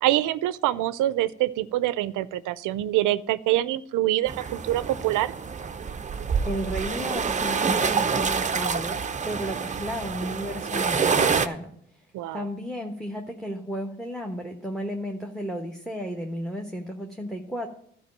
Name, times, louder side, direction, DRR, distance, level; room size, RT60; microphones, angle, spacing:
voice 1, 0.0-5.3 12.1-12.4, right 14 dB, 90° right, 17 dB, 0.5 m, -25 dB
sound 1, 4.3-11.5, right 5 dB, 25° right, 0.6 m, -27 dB
voice 2, 6.4-9.0 9.3-11.7 12.3-17.7, equal, ahead, 2 dB, 1.1 m, -33 dB
12.5 x 4.9 x 7.3 m, 0.68 s
cardioid pair, 90°, 30 cm